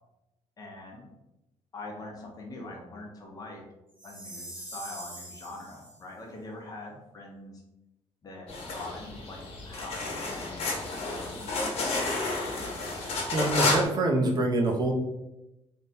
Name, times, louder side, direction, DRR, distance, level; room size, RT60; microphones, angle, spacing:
voice 1, 0.6-1.1 1.7-3.6 4.0-7.6 8.2-11.9, left 2 dB, 35° left, 0 dB, 0.8 m, -43 dB
Chime, 4.0-6.0, right 1 dB, 10° right, 1.2 m, -43 dB
sound 1, 8.5-13.8, left 3 dB, 60° left, 1.1 m, -31 dB
voice 2, 13.0-14.9, right 2 dB, 35° right, 0 dB, 0.6 m, -26 dB
3.3 x 2.2 x 4.1 m, 0.92 s
cardioid pair, 150°, 11 cm